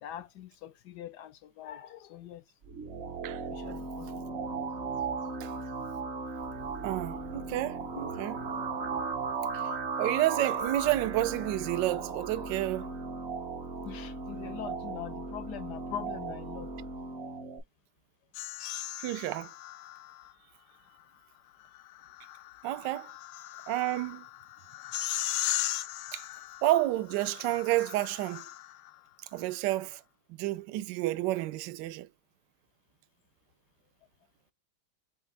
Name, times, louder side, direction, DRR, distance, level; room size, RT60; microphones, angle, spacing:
voice 1, 0.0-2.4 3.5-4.1 13.8-16.7, left 10 dB, 75° left, 1.0 m, -42 dB
sound 1, 2.6-17.6, right 4 dB, 45° right, 0.8 m, -36 dB
voice 2, 6.8-8.4 9.5-9.7 10.0-12.9 19.0-19.5 22.6-23.1 23.7-24.2 26.1-26.2 26.6-28.4 29.3-30.0 30.4-32.1, right 16 dB, 75° right, 1.1 m, -30 dB
sound 2, 18.3-20.3 21.8-28.9, left 14 dB, 90° left, 1.4 m, -38 dB
6.3 x 2.4 x 3.2 m
omnidirectional pair, 2.2 m